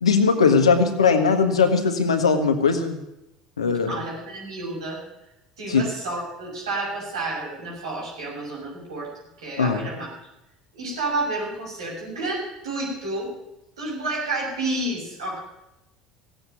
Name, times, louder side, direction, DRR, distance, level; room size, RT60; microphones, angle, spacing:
voice 1, 0.0-3.0 3.6-4.0 5.7-5.8 9.6-9.9, left 5 dB, 85° left, 7 dB, 1.5 m, -19 dB
voice 2, 3.9-5.0 5.6-9.1 9.4-10.1 10.7-13.3 13.8-15.4, right 2 dB, 80° right, -3 dB, 6.6 m, -30 dB
15.5 x 9.0 x 9.3 m, 0.89 s
figure-of-eight pair, 65°, 3 cm